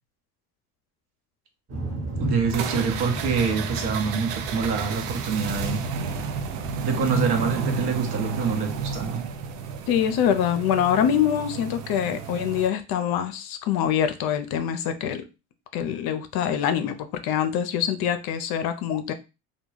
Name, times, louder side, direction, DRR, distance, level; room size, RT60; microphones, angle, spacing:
sound 1, 1.7-10.0 10.4-11.7 12.0-12.2, right 2 dB, 30° right, 1.0 m, -36 dB
voice 1, 2.2-5.8 6.8-9.2, right 5 dB, 55° right, 4 dB, 0.9 m, -26 dB
sound 2, 2.5-12.7, right 6 dB, 80° right, 0.6 m, -32 dB
voice 2, 9.9-15.2 15.7-16.9 17.2-19.1, left 9 dB, 55° left, 8 dB, 0.6 m, -24 dB
2.3 x 2.2 x 3.1 m, 0.28 s
hypercardioid pair, 80°, 45 cm